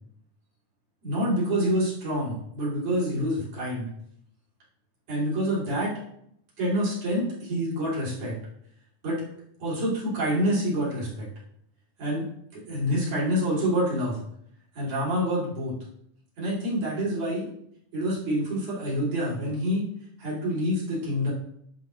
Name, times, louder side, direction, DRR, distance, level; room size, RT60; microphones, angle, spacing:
voice 1, 1.0-3.9 5.1-5.9 6.6-8.4 9.0-9.2 9.6-11.3 12.0-12.2 12.5-14.2 14.7-15.7 16.4-17.5 17.9-19.9 20.2-21.3, equal, 50° right, -7 dB, 4.0 m, -27 dB
11.5 x 5.2 x 3.1 m, 0.71 s
omnidirectional pair, 4.0 m